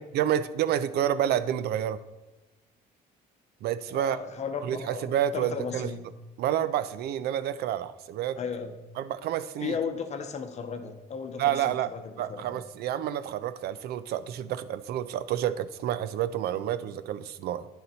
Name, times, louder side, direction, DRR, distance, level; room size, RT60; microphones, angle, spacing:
voice 1, 0.1-2.0 3.6-4.2 4.6-5.9 6.4-8.4 9.0-9.8 11.4-11.9 12.2-17.7, right 11 dB, 70° right, 15 dB, 0.5 m, -29 dB
voice 2, 3.9-6.1 8.4-8.8 9.6-12.6, left 6 dB, 40° left, 7 dB, 0.8 m, -35 dB
9.7 x 4.0 x 4.2 m, 1.1 s
cardioid pair, 110°, 17 cm